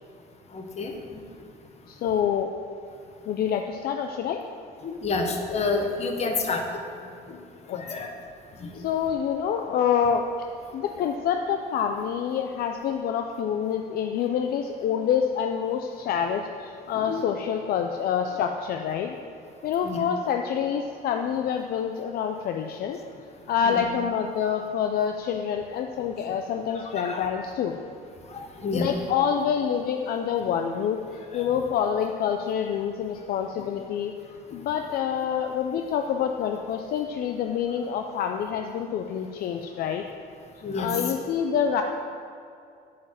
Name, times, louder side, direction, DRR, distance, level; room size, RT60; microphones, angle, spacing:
voice 1, 0.5-1.2 4.8-6.6 7.7-8.1 8.6-8.8 16.9-17.2 19.8-20.0 23.6-23.9 26.7-27.3 28.3-28.9 31.3-31.5 40.6-41.1, left 3 dB, 40° left, 3 dB, 1.2 m, -29 dB
voice 2, 1.9-2.5 3.3-4.4 7.7-7.8 8.7-10.2 10.7-19.1 19.6-23.0 23.5-27.8 28.7-31.0 31.3-34.1 34.5-40.0 40.8-41.8, left 8 dB, 65° left, 4 dB, 0.5 m, -27 dB
8.0 x 5.1 x 7.5 m, 2.5 s
cardioid pair, 110°, 17 cm